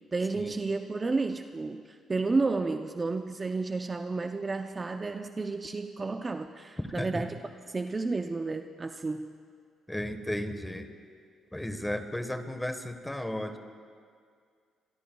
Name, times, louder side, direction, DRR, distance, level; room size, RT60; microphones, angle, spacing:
voice 1, 0.1-7.4 7.7-9.4, right 3 dB, 30° right, 6 dB, 0.5 m, -31 dB
voice 2, 6.8-7.3 9.9-10.9 11.5-13.6, left 1 dB, 10° left, 8 dB, 1.2 m, -34 dB
26.5 x 22.5 x 2.3 m, 2.2 s
cardioid pair, 90°, 0 cm